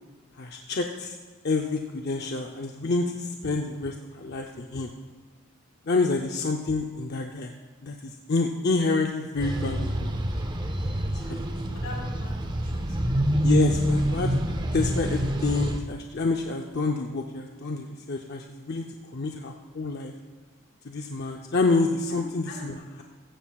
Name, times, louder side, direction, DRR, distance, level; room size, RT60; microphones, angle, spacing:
voice 1, 0.4-1.2 1.4-4.9 5.9-7.5 7.8-10.1 10.8-11.4 13.4-14.4 14.7-18.8 19.1-20.1 20.8-23.0, left 3 dB, 50° left, 2 dB, 0.6 m, -28 dB
sound 1, 9.4-15.8, equal, 20° right, 0.6 m, -27 dB
voice 2, 11.2-13.2 22.1-22.6, left 2 dB, 85° left, -3 dB, 4.0 m, -43 dB
15.5 x 14.5 x 2.3 m, 1.4 s
head